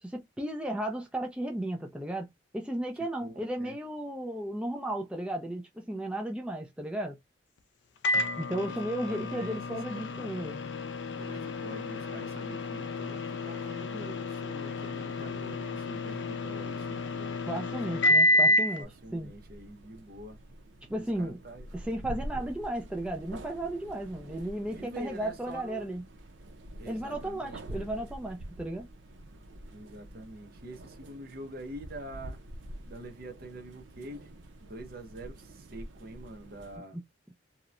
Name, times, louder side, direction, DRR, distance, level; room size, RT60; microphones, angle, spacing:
voice 1, 0.0-7.2 8.4-10.6 17.5-18.9 19.1-19.3 20.9-21.4 21.7-26.0 26.9-28.9 36.9-37.0, right 1 dB, 5° right, 0.4 m, -34 dB
voice 2, 3.2-3.8 8.5-8.7 9.0-9.6 9.9-10.1 11.2-17.4 18.0-20.4 20.9-21.7 24.7-25.9 26.8-27.6 29.7-32.5 32.9-34.4 34.6-37.0, right 1 dB, 55° right, 0.8 m, -45 dB
Microwave oven, 8.0-18.8, left 2 dB, 70° left, 0.4 m, -30 dB
sound 1, 18.8-36.8, right 1 dB, 90° right, 0.5 m, -46 dB
2.8 x 2.1 x 2.4 m
head